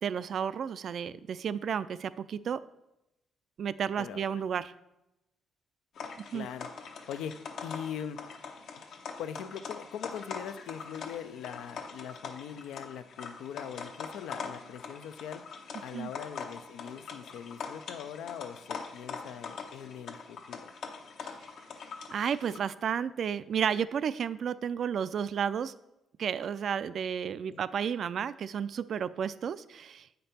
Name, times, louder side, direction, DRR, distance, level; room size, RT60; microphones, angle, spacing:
voice 1, 0.0-2.6 3.6-4.7 6.3-6.5 15.9-16.1 21.2-21.3 22.1-25.7 26.2-30.1, right 7 dB, 60° right, 16 dB, 0.3 m, -32 dB
voice 2, 4.0-4.4 6.3-6.7 7.1-7.3 7.6-8.2 9.2-15.4 15.8-20.7 27.4-27.6, left 9 dB, 85° left, 11 dB, 0.4 m, -41 dB
sound 1, 6.0-22.6, left 5 dB, 70° left, 0.9 m, -43 dB
7.8 x 5.2 x 4.3 m, 0.91 s
cardioid pair, 90°, 0 cm